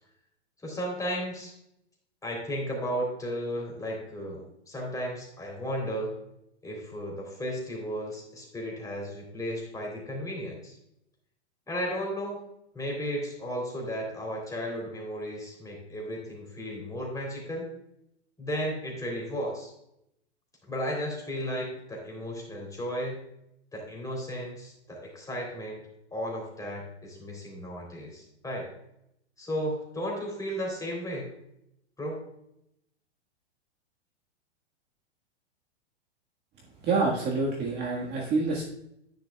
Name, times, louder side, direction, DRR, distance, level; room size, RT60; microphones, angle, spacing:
voice 1, 0.6-1.5 2.2-6.1 6.6-10.8 11.7-12.4 12.7-17.7 18.4-19.7 20.6-23.2 23.7-25.8 26.1-28.7 29.4-31.3 32.0-32.2, equal, 10° left, -1 dB, 3.3 m, -34 dB
voice 2, 36.8-38.6, right 3 dB, 30° right, -2 dB, 1.6 m, -27 dB
10.5 x 10.5 x 2.3 m, 0.79 s
hypercardioid pair, 120°, 34 cm